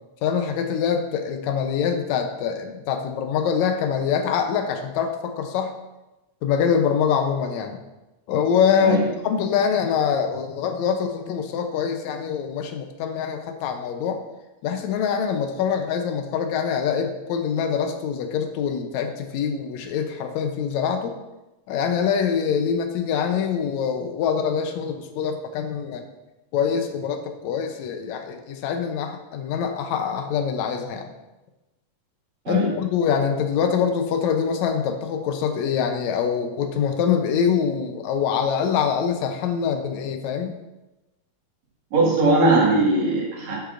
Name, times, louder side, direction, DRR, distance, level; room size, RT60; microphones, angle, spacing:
voice 1, 0.2-5.8 6.4-7.8 8.3-14.2 14.6-21.2 21.7-26.0 26.5-31.1 32.5-40.6, left 7 dB, 80° left, 5 dB, 1.6 m, -24 dB
voice 2, 41.9-43.6, right 2 dB, 55° right, -4 dB, 2.9 m, -19 dB
11.5 x 7.9 x 2.5 m, 1.0 s
omnidirectional pair, 4.1 m